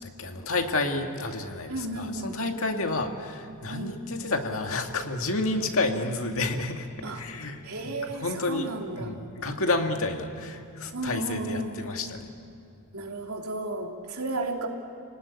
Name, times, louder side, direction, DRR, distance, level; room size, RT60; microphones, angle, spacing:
voice 1, 0.2-8.7 8.9-12.3, left 2 dB, 65° left, 4 dB, 2.1 m, -30 dB
voice 2, 1.7-2.4 3.7-3.9 7.0-7.2 7.6-9.1 10.9-12.0 12.9-14.7, right 2 dB, 70° right, 1 dB, 3.2 m, -33 dB
29.5 x 18.5 x 9.9 m, 2.5 s
head